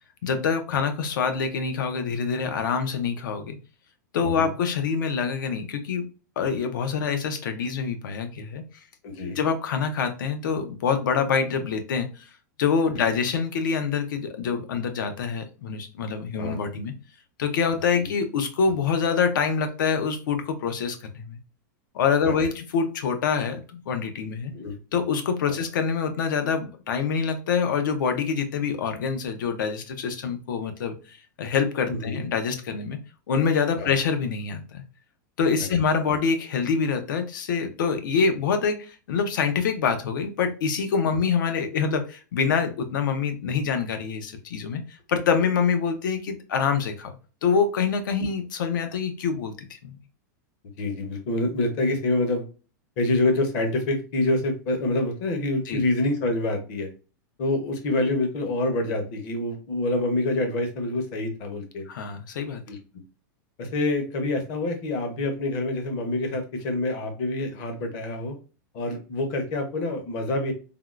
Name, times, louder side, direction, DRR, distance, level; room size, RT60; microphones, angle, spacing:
voice 1, 0.2-3.6 4.1-8.6 9.2-12.3 12.6-16.9 17.4-21.4 21.9-24.5 24.9-33.0 33.3-34.8 35.4-47.1 47.4-50.0 55.7-55.8 61.9-62.6, left 6 dB, 75° left, 8 dB, 0.6 m, -26 dB
voice 2, 9.0-9.4 16.4-16.6 22.2-22.5 24.5-24.8 31.9-32.2 33.8-33.9 35.7-35.8 36.1-36.2 50.8-52.4 53.0-56.9 57.4-61.9 62.7-62.8 63.6-68.4 68.7-70.5, left 2 dB, 30° left, 5 dB, 0.7 m, -26 dB
3.5 x 2.2 x 2.3 m, 0.34 s
supercardioid pair, 175°, 11 cm